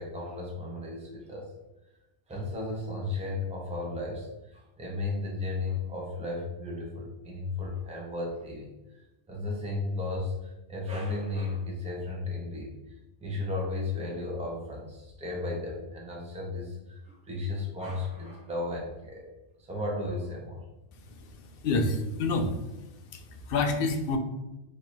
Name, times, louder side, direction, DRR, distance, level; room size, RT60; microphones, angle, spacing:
voice 1, 0.0-1.5 2.3-9.0 9.3-12.7 13.2-19.3 19.7-20.6, left 2 dB, 10° right, -2 dB, 0.5 m, -34 dB
voice 2, 21.1-24.2, left 3 dB, 60° left, 5 dB, 0.6 m, -29 dB
3.2 x 2.6 x 4.3 m, 0.99 s
omnidirectional pair, 1.3 m